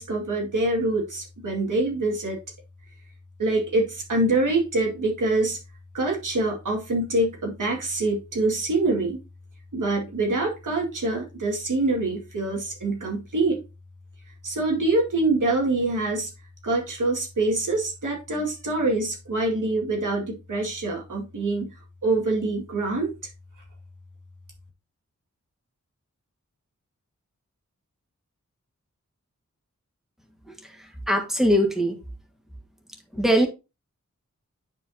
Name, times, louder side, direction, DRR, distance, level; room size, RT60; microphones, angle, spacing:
voice 1, 0.0-2.4 3.4-5.6 5.9-9.2 9.7-13.6 14.4-16.3 16.6-21.7 22.0-23.1, right 2 dB, 85° right, 2.2 m, -25 dB
voice 2, 31.1-31.9 33.1-33.5, equal, ahead, 1.6 m, -21 dB
8.9 x 5.1 x 2.8 m
wide cardioid pair, 75°, 30 cm